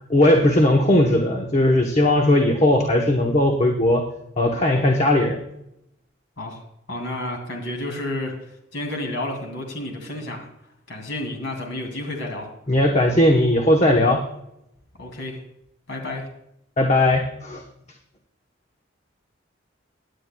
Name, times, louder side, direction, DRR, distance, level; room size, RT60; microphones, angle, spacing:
voice 1, 0.1-4.0 4.4-5.4 12.7-14.2 16.8-17.6, left 1 dB, 35° left, 2 dB, 0.9 m, -18 dB
voice 2, 6.9-8.3 8.7-10.5 10.9-12.5 15.0-15.4 15.9-16.3, left 1 dB, 70° left, 2 dB, 2.5 m, -30 dB
17.0 x 9.8 x 2.3 m, 0.81 s
head